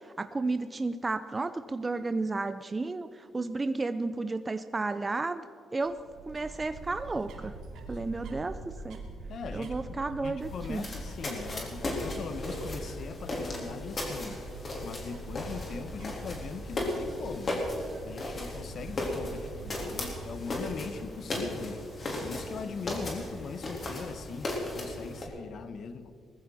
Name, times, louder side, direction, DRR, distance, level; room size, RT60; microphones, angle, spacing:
voice 1, 0.0-5.4 5.7-6.0 6.3-7.5 7.9-9.0 9.5-10.9, right 3 dB, 25° right, 0.6 m, -32 dB
sound 1, 5.8-21.0, right 2 dB, 75° right, 2.5 m, -44 dB
voice 2, 9.3-14.4 14.8-17.7 18.0-21.9 22.2-26.1, left 6 dB, 60° left, 0.9 m, -41 dB
sound 2, 10.4-25.3, left 1 dB, 40° left, 3.7 m, -36 dB
19.5 x 14.5 x 4.2 m
cardioid pair, 90°, 0 cm